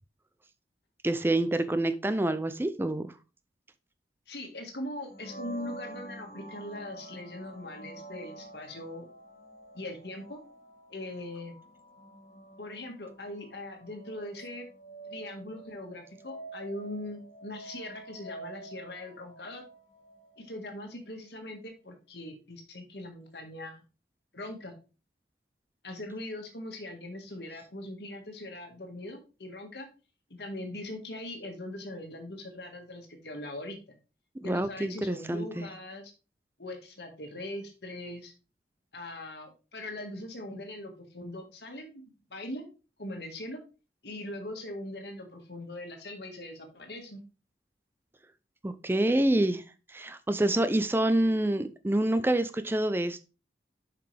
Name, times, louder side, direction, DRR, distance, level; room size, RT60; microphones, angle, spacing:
voice 1, 1.0-3.1 34.4-35.7 48.6-49.6 49.9-53.2, right 1 dB, 15° right, 12 dB, 0.4 m, -27 dB
voice 2, 4.3-9.1 9.7-10.4 10.9-11.6 12.6-14.7 15.1-19.7 20.4-23.8 24.3-24.7 25.8-29.9 30.4-33.8 34.4-36.1 36.6-38.3 38.9-42.0 42.3-42.7 43.0-43.6 44.0-47.2, left 1 dB, 70° left, 4 dB, 1.7 m, -41 dB
sound 1, 5.1-20.7, right 2 dB, 50° left, 3.1 m, -48 dB
7.3 x 5.8 x 3.3 m, 0.33 s
head